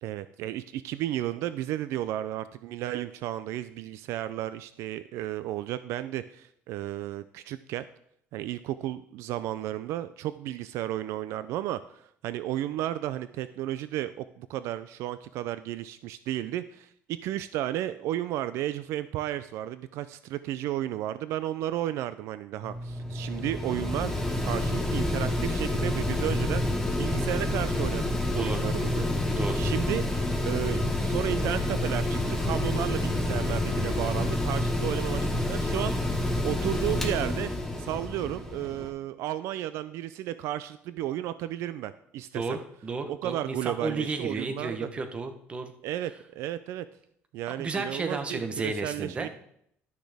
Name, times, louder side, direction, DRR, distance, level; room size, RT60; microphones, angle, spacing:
voice 1, 0.0-7.9 8.3-24.1 24.4-26.6 26.9-29.0 29.3-37.5 37.8-42.4 43.1-44.9 45.8-46.9 47.3-49.3, right 13 dB, 75° right, 13 dB, 0.4 m, -33 dB
Mechanical fan, 22.6-38.9, left 1 dB, 10° left, 1.1 m, -28 dB
voice 2, 29.3-29.6 42.3-45.7 47.5-49.3, right 3 dB, 25° right, 7 dB, 0.9 m, -33 dB
12.0 x 6.2 x 3.4 m, 0.70 s
cardioid pair, 145°, 5 cm